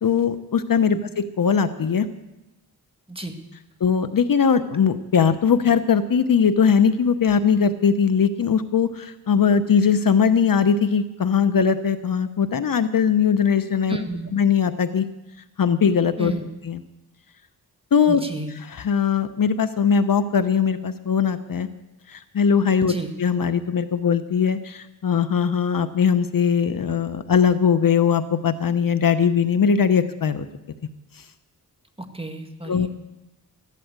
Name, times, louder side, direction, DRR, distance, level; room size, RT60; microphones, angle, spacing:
voice 1, 0.0-2.1 3.8-14.0 14.3-15.1 15.6-16.3 16.7-16.8 17.9-18.2 18.7-21.7 22.1-22.9 23.2-30.5 32.7-32.9, left 6 dB, 55° left, 12 dB, 0.8 m, -20 dB
voice 2, 13.9-14.3 16.2-16.5 18.1-18.5 22.9-23.1 32.0-32.9, right 1 dB, 15° right, 5 dB, 1.9 m, -31 dB
14.0 x 12.0 x 8.1 m, 0.97 s
wide cardioid pair, 85°, 41 cm